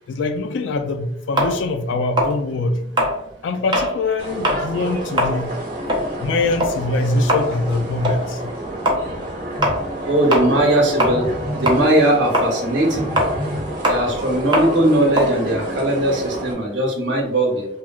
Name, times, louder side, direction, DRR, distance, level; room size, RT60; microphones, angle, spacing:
voice 1, 0.1-2.9 3.4-5.6 6.2-8.4, left 2 dB, 70° left, 0.3 m, -23 dB
sound 1, 1.4-4.0 4.3-4.7 5.0-11.4 11.7-16.4, equal, 25° right, 0.5 m, -22 dB
sound 2, 4.2-16.5, right 1 dB, 45° right, 0.9 m, -30 dB
Telephone, 9.6-9.8 11.0-11.7 12.9-13.7, left 1 dB, 25° left, 0.8 m, -28 dB
voice 2, 10.0-11.3 11.5-13.1 13.8-17.7, right 1 dB, 70° right, 0.8 m, -19 dB
3.0 x 2.5 x 2.3 m
head